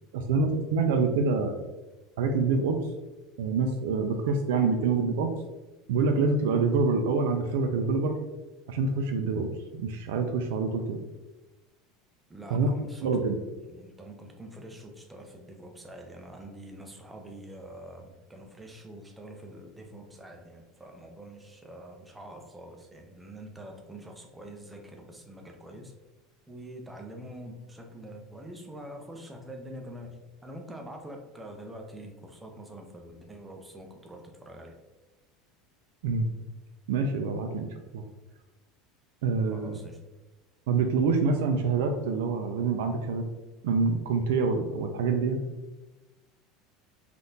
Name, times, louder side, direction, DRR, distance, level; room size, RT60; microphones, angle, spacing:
voice 1, 0.1-1.6 2.2-2.8 3.4-5.3 5.9-8.2 8.7-9.5 9.8-11.0 12.5-12.7 13.0-13.4 36.0-36.3 36.9-37.7 37.9-38.0 39.2-39.8 40.7-43.2 43.6-45.4, right 4 dB, 85° right, 5 dB, 0.3 m, -26 dB
voice 2, 12.3-13.2 13.6-25.9 26.5-34.8 39.5-40.0, right 1 dB, 5° right, 3 dB, 0.3 m, -45 dB
3.5 x 2.4 x 2.7 m, 1.1 s
cardioid pair, 175°, 0 cm